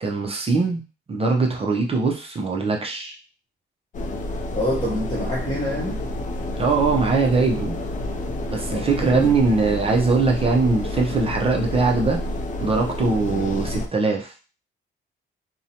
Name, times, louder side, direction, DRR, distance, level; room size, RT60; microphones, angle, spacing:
voice 1, 0.0-0.8 1.1-3.1 6.6-7.8 8.5-12.2 12.6-14.4, right 4 dB, 30° right, 1 dB, 0.5 m, -21 dB
sound 1, 3.9-13.9, left 1 dB, 40° left, 0.4 m, -29 dB
voice 2, 4.5-6.0 8.7-9.3, equal, 20° left, -6 dB, 0.8 m, -26 dB
2.6 x 2.1 x 2.7 m, 0.34 s
cardioid pair, 90°, 20 cm